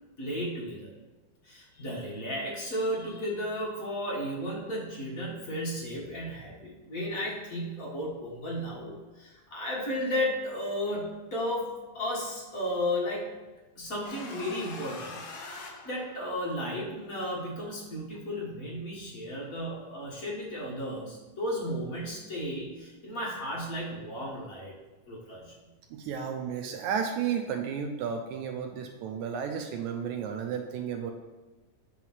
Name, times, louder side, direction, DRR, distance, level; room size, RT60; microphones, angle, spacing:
voice 1, 0.2-0.9 1.4-13.2 13.8-15.2 15.6-24.7 25.1-25.5, equal, 50° left, -5 dB, 1.0 m, -34 dB
sound 1, 14.0-16.6, left 3 dB, 85° left, 1.2 m, -43 dB
voice 2, 25.9-31.1, right 7 dB, 80° right, 4 dB, 1.7 m, -33 dB
8.1 x 3.0 x 5.6 m, 1.2 s
omnidirectional pair, 3.8 m